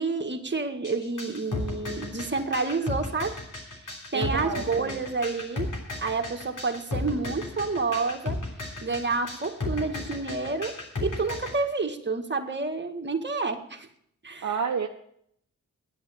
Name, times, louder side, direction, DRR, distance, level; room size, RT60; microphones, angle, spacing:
voice 1, 0.0-3.3 3.8-5.7 6.0-8.4 8.8-10.7 11.0-13.9 14.2-14.5, right 3 dB, 35° right, 4 dB, 1.8 m, -29 dB
sound 1, 0.8-11.5, left 3 dB, 65° left, 3.2 m, -34 dB
voice 2, 4.1-5.0 14.4-14.9, right 6 dB, 55° right, 4 dB, 0.9 m, -29 dB
10.0 x 8.5 x 8.7 m, 0.70 s
cardioid pair, 60°, 33 cm